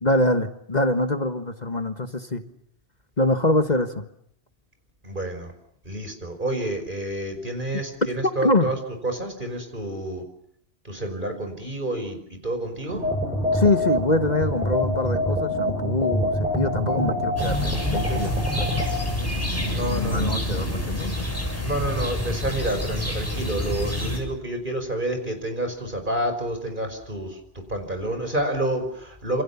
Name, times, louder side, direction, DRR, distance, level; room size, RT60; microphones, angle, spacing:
voice 1, 0.0-2.4 3.2-4.0 8.4-8.7 13.5-18.3 18.6-19.1 19.6-21.2, left 2 dB, 40° left, 8 dB, 1.6 m, -24 dB
voice 2, 5.0-5.5 5.9-8.8 9.0-10.2 10.9-13.0 19.7-20.4 21.6-27.3 27.7-29.4, right 1 dB, 45° right, 6 dB, 5.5 m, -29 dB
sound 1, 12.9-22.7, right 1 dB, 85° right, 4.4 m, -36 dB
sound 2, 13.0-19.0, left 1 dB, 10° right, 6.3 m, -26 dB
sound 3, 17.4-24.2, left 1 dB, 15° left, 7.7 m, -28 dB
28.0 x 27.5 x 7.2 m, 0.68 s
omnidirectional pair, 1.1 m